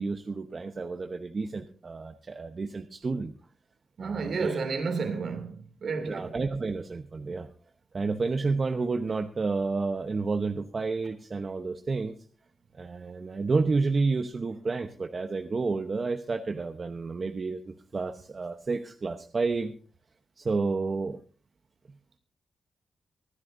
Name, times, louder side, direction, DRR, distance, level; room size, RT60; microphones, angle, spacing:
voice 1, 0.0-3.3 4.0-4.6 6.1-7.5 7.9-12.1 12.7-19.7 20.4-21.2, right 4 dB, 40° right, 0.9 m, -30 dB
voice 2, 4.0-6.3, right 4 dB, 65° right, 2.7 m, -31 dB
25.0 x 9.8 x 2.7 m
cardioid pair, 85°, 0 cm